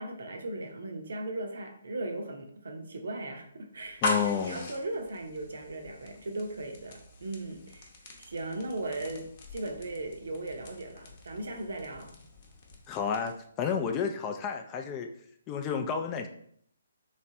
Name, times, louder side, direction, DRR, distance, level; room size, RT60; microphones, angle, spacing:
voice 1, 0.0-4.0 4.4-7.9 8.2-12.1, right 2 dB, 70° right, 4 dB, 0.7 m, -37 dB
sound 1, 3.8-13.5, left 2 dB, 45° left, 0.8 m, -40 dB
voice 2, 4.0-4.6 12.9-15.1 15.5-16.3, left 7 dB, 25° left, 5 dB, 0.4 m, -31 dB
3.2 x 3.1 x 2.7 m, 0.64 s
figure-of-eight pair, 145°, 0 cm